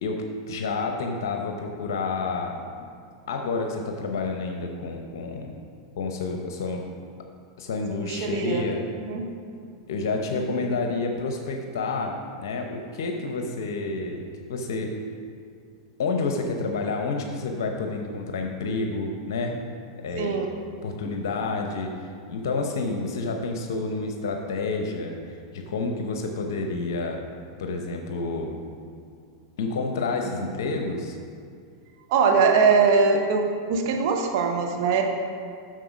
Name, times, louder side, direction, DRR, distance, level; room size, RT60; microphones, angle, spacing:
voice 1, 0.0-2.9 3.3-5.5 6.0-6.8 7.6-8.9 9.9-14.9 16.0-19.5 20.0-20.4 20.8-27.2 27.6-28.6 29.6-31.2, left 3 dB, 70° left, 3 dB, 0.8 m, -29 dB
voice 2, 8.0-8.7 9.0-9.3 10.5-10.7 20.2-20.5 30.4-30.5 32.1-35.0, right 5 dB, 60° right, 2 dB, 1.1 m, -22 dB
7.6 x 6.5 x 5.2 m, 2.2 s
hypercardioid pair, 100°, 2 cm